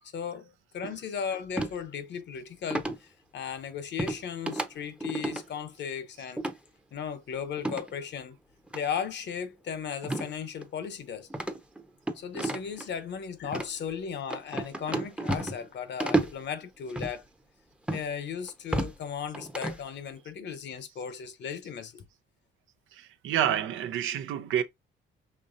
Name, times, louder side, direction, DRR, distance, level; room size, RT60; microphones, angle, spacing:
voice 1, 0.1-0.5 0.7-6.4 6.9-8.4 8.7-11.3 12.1-17.2 17.9-22.0, left 7 dB, 60° left, 0.9 m, -36 dB
sound 1, 1.6-1.8 2.7-3.0 4.0-4.2 4.5-4.7 5.0-5.4 6.4-6.6 7.6-7.9 8.7-8.8 10.0-10.3 10.6-10.7 11.3-12.9 13.4-13.7 14.3-15.7 16.0-16.4 16.9-17.1 17.9-18.0 18.5-19.0 19.3-19.8, right 2 dB, 5° right, 0.7 m, -31 dB
voice 2, 22.9-24.6, right 10 dB, 80° right, 0.6 m, -29 dB
5.3 x 3.1 x 2.6 m
cardioid pair, 90°, 20 cm